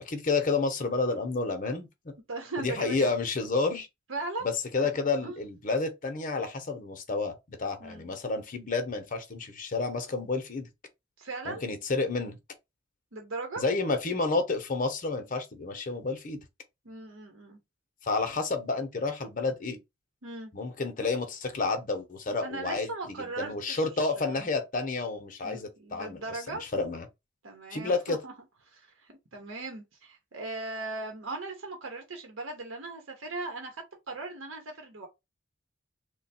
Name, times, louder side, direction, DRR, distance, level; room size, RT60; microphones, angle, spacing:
voice 1, 0.0-1.9 2.6-3.9 4.4-10.7 11.5-12.4 13.6-16.4 18.0-19.8 20.5-22.9 23.4-26.2 26.5-27.1 27.7-28.2, left 3 dB, 40° left, 0.7 m, -30 dB
voice 2, 2.3-3.1 4.1-4.5 4.8-4.9 5.2-5.4 7.8-8.1 11.2-11.6 13.1-13.6 16.8-17.6 20.2-20.5 22.4-24.5 25.4-26.6 27.4-28.3 28.7-35.1, right 3 dB, 70° right, 0.9 m, -38 dB
3.3 x 2.2 x 4.1 m
head